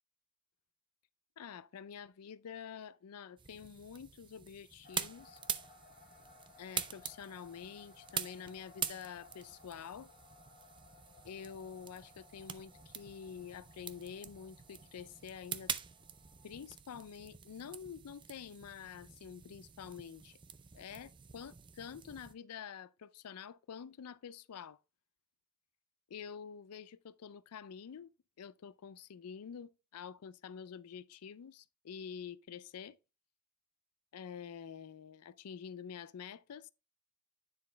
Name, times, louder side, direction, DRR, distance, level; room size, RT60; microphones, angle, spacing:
voice 1, 1.4-5.4 6.6-10.1 11.2-15.7 16.4-20.4 20.7-24.8 26.1-28.1 28.4-33.0 34.1-36.7, left 7 dB, 85° left, 0.4 m, -48 dB
sound 1, 3.4-22.3, right 8 dB, 20° right, 0.4 m, -45 dB
sound 2, 4.8-16.8, left 4 dB, 40° left, 1.2 m, -62 dB
9.6 x 4.1 x 3.3 m
head